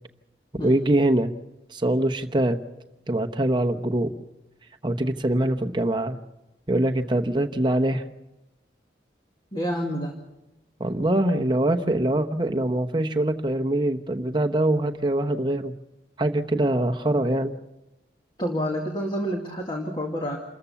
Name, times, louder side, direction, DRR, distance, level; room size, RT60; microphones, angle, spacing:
voice 1, 0.6-1.3 1.7-2.6 3.1-4.1 4.8-6.2 6.7-8.0 10.8-15.7 16.2-17.5, right 1 dB, 25° right, 6 dB, 1.0 m, -23 dB
voice 2, 9.5-10.2 18.4-20.4, equal, 25° left, 1 dB, 2.1 m, -28 dB
28.5 x 14.0 x 7.0 m, 0.99 s
head